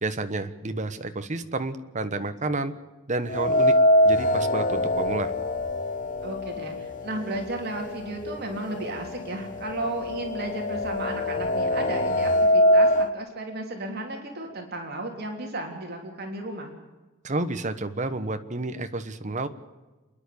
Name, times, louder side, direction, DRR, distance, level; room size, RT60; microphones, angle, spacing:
voice 1, 0.0-2.7 3.1-3.7 4.0-5.3 17.2-19.5, right 2 dB, 40° right, 9 dB, 1.2 m, -30 dB
sound 1, 3.3-7.3 7.7-7.8 8.8-8.9 9.2-13.1, left 1 dB, 40° left, 1.0 m, -23 dB
voice 2, 6.2-16.7, right 2 dB, 55° right, 2 dB, 3.4 m, -34 dB
28.0 x 10.5 x 8.6 m, 1.2 s
head